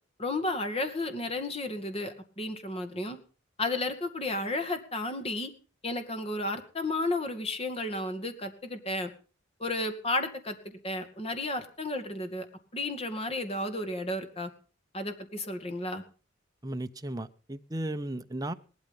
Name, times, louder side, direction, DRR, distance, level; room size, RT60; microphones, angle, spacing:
voice 1, 0.2-3.2 3.6-5.5 5.8-9.1 9.6-12.5 12.7-14.5 14.9-16.0, left 2 dB, 30° left, 8 dB, 2.2 m, -33 dB
voice 2, 16.6-18.5, right 1 dB, 20° right, 8 dB, 0.8 m, -35 dB
18.5 x 12.5 x 5.6 m, 0.38 s
head